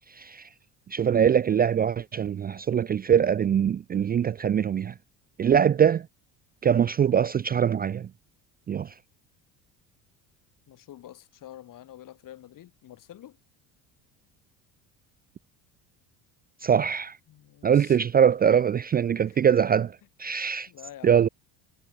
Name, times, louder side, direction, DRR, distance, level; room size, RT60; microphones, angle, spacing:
voice 1, 0.1-0.5 0.9-4.9 5.4-6.1 6.6-8.1 8.7-8.9 16.6-17.2 17.6-20.7 21.0-21.3, right 8 dB, 25° right, 0.4 m, -23 dB
voice 2, 10.7-13.4 17.3-18.0 20.7-21.1, left 12 dB, 55° left, 3.2 m, -47 dB
supercardioid pair, 100°, 39 cm